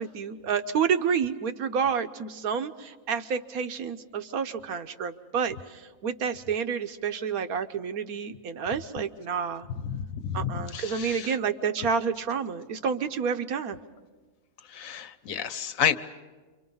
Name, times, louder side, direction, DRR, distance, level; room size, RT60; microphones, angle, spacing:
voice 1, 0.0-9.7 10.3-13.8, right 6 dB, 80° right, 8 dB, 1.4 m, -29 dB
voice 2, 9.7-11.4 14.7-16.0, left 8 dB, 65° left, 12 dB, 1.2 m, -30 dB
28.0 x 24.5 x 5.5 m, 1.4 s
omnidirectional pair, 1.6 m